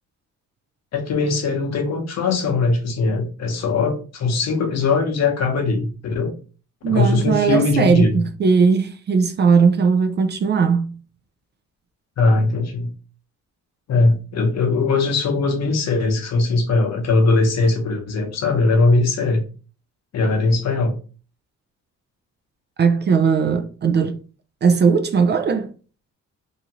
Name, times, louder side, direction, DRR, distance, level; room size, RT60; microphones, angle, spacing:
voice 1, 0.9-6.3 6.9-8.2 12.2-12.9 13.9-19.4 20.1-21.0, left 3 dB, 60° left, 0.9 m, -20 dB
voice 2, 6.8-11.0 22.8-24.2 24.6-25.7, right 5 dB, 35° right, 0.4 m, -18 dB
2.8 x 2.5 x 2.9 m
cardioid pair, 90°, 30 cm